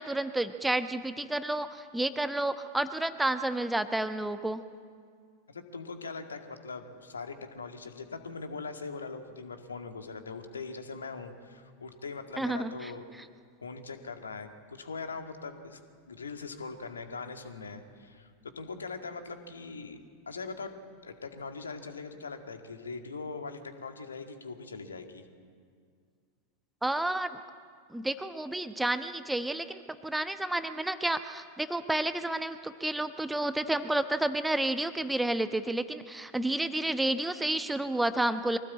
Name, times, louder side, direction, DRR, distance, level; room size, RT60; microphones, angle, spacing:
voice 1, 0.0-4.6 12.4-12.9 26.8-27.4 27.9-38.6, right 1 dB, 5° right, 11 dB, 1.0 m, -30 dB
voice 2, 5.5-13.0 13.6-15.8 16.1-20.0 20.3-20.7 21.0-25.3, left 4 dB, 70° left, 6 dB, 2.0 m, -41 dB
24.0 x 17.5 x 8.6 m, 2.1 s
figure-of-eight pair, 90°, 0 cm